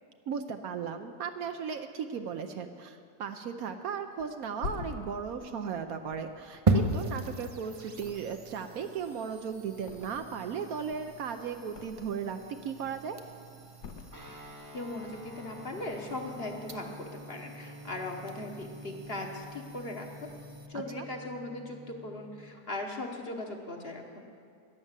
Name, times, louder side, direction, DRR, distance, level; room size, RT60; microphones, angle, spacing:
voice 1, 0.3-13.2 20.7-21.0, right 6 dB, 65° right, 7 dB, 1.0 m, -36 dB
Thump thud, 4.2-7.5 7.9-8.7 9.0-10.5 10.8-12.3 12.7-13.2 13.8-14.8 15.1-15.3, left 5 dB, 75° left, 1.3 m, -45 dB
sound 1, 6.7-20.7, right 2 dB, 45° right, 0.4 m, -37 dB
Guitar, 14.1-22.6, left 1 dB, 15° right, 0.9 m, -48 dB
voice 2, 14.7-20.3 20.7-24.2, left 2 dB, 40° left, 2 dB, 1.1 m, -39 dB
12.0 x 10.5 x 7.4 m, 2.3 s
omnidirectional pair, 1.8 m